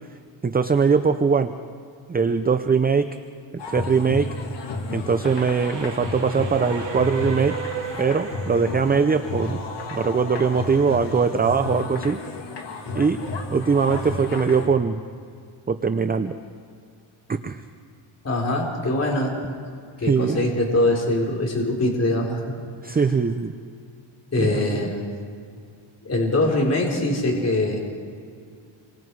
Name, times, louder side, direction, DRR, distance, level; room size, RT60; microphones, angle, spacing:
voice 1, 0.4-1.5 2.1-3.1 3.5-4.3 4.9-7.6 8.0-9.6 9.9-12.2 12.9-13.2 13.5-15.0 15.7-16.3 17.3-17.6 20.1-20.5 22.8-23.5 24.4-24.8, right 5 dB, 20° right, 9 dB, 0.6 m, -21 dB
sound 1, 3.6-14.7, left 2 dB, 60° left, 2.6 m, -32 dB
Train, 5.2-10.5, right 7 dB, 60° right, 2.9 m, -35 dB
voice 2, 18.2-19.4 20.0-22.6 22.9-23.0 24.3-25.1 26.0-27.8, left 1 dB, 30° left, -1 dB, 4.1 m, -23 dB
28.0 x 24.0 x 4.8 m, 2.3 s
cardioid pair, 130°, 48 cm